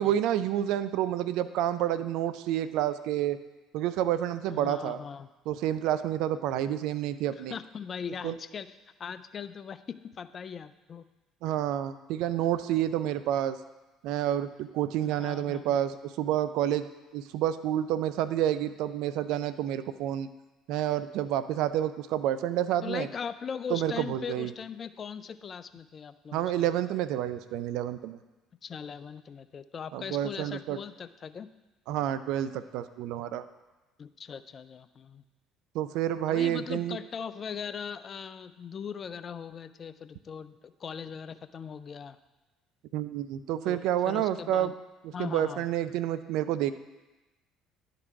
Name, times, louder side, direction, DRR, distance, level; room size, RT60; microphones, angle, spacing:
voice 1, 0.0-3.4 3.7-5.0 5.5-7.5 8.2-8.4 11.4-13.6 14.0-16.9 17.1-20.3 20.7-23.1 23.7-24.5 26.3-28.2 29.9-30.8 31.9-33.4 35.7-37.0 42.9-44.7 45.0-46.7, right 11 dB, 70° right, 13 dB, 0.4 m, -29 dB
voice 2, 4.5-5.3 7.4-11.1 15.0-15.8 22.8-26.7 28.6-31.5 34.0-35.2 36.3-42.2 43.7-43.8 44.0-44.7 45.1-45.7, left 7 dB, 40° left, 13 dB, 0.4 m, -40 dB
11.0 x 3.9 x 4.6 m, 1.1 s
hypercardioid pair, 65°, 0 cm